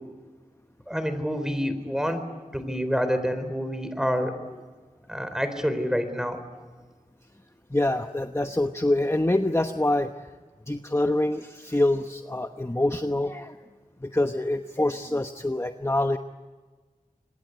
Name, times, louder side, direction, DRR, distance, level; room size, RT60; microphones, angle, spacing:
voice 1, 0.9-2.2 2.5-4.3 5.1-6.4, equal, 5° right, 10 dB, 4.0 m, -27 dB
voice 2, 7.7-10.1 10.7-13.5 14.0-16.2, left 1 dB, 20° left, 7 dB, 1.0 m, -25 dB
25.5 x 21.0 x 9.5 m, 1.4 s
wide cardioid pair, 40°, 14 cm